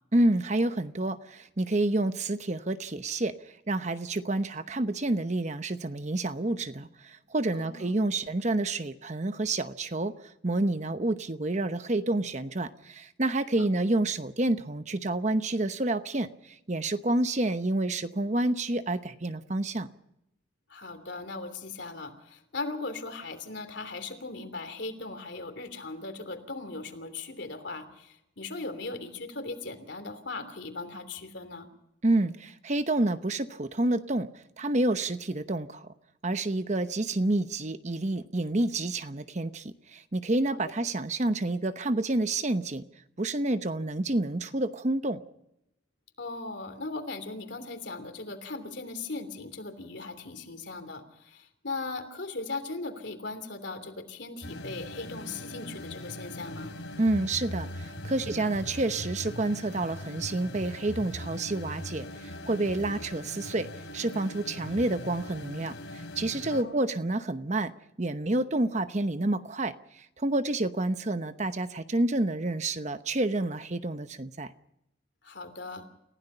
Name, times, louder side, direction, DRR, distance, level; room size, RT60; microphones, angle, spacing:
voice 1, 0.1-3.3 3.7-19.9 32.0-34.3 34.6-35.9 36.2-42.8 43.2-45.2 57.0-63.7 63.9-67.7 68.0-74.5, right 2 dB, 35° right, 10 dB, 0.9 m, -29 dB
voice 2, 7.5-7.9 13.6-13.7 20.7-31.7 40.6-40.7 46.2-56.7 66.5-66.8 75.2-75.8, left 3 dB, 65° left, 8 dB, 3.1 m, -38 dB
sound 1, 54.4-66.6, left 1 dB, 90° left, 3.9 m, -40 dB
29.5 x 16.0 x 5.6 m, 0.83 s
head